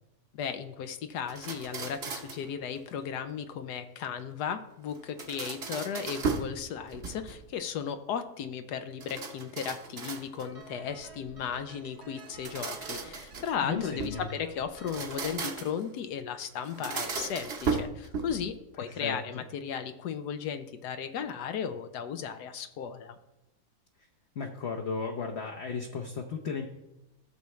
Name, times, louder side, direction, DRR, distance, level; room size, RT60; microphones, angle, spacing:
voice 1, 0.3-23.2, left 7 dB, 80° left, 9 dB, 1.2 m, -35 dB
sound 1, 1.3-2.5 4.9-6.6 6.9-7.5 9.0-10.6 12.2-14.2 14.8-15.9 16.6-18.5, right 4 dB, 45° right, 1.0 m, -36 dB
sound 2, 10.4-15.5, right 4 dB, 70° right, 1.7 m, -50 dB
voice 2, 13.6-14.3 18.8-19.2 24.3-26.7, left 5 dB, 50° left, 2 dB, 0.9 m, -35 dB
14.0 x 6.9 x 3.2 m, 0.92 s
omnidirectional pair, 1.7 m